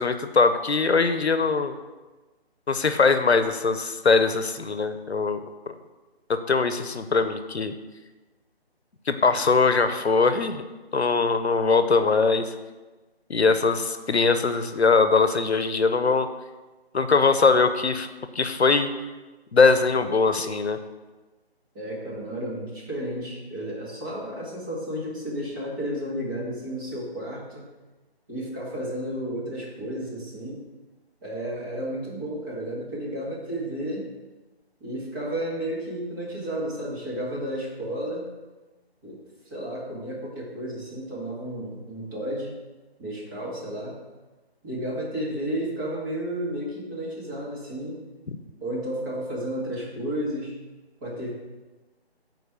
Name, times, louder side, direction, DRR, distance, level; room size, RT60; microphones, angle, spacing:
voice 1, 0.0-1.8 2.7-5.4 6.5-7.7 9.1-10.6 10.9-12.5 13.3-16.3 16.9-18.1 18.3-18.9 19.5-20.8, left 4 dB, 85° left, 9 dB, 0.8 m, -21 dB
voice 2, 21.7-27.6 28.3-30.6 31.2-34.0 34.8-38.3 39.0-39.2 39.4-42.5 43.0-44.0 44.6-48.0 48.6-50.5 51.0-51.3, right 1 dB, 20° right, -5 dB, 1.8 m, -32 dB
8.2 x 4.6 x 6.0 m, 1.2 s
figure-of-eight pair, 155°, 32 cm